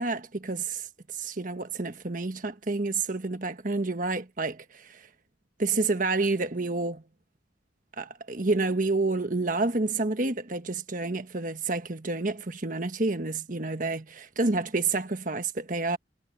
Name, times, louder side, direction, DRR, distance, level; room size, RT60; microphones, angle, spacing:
voice 1, 0.0-5.0 5.6-7.0 8.0-16.0, right 3 dB, 50° right, 1.4 m, -29 dB
head